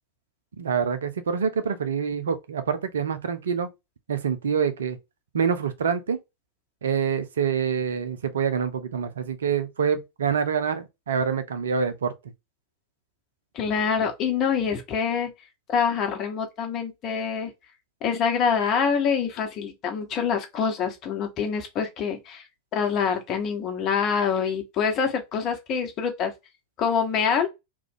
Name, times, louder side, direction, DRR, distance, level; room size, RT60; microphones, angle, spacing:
voice 1, 0.6-3.7 4.1-5.0 5.3-6.2 6.8-12.1, right 7 dB, 65° right, 0.5 m, -26 dB
voice 2, 13.5-15.3 15.7-17.5 18.0-22.4 22.7-26.3 26.8-27.5, left 6 dB, 35° left, 1.0 m, -25 dB
3.0 x 2.4 x 3.6 m
figure-of-eight pair, 90°, 0 cm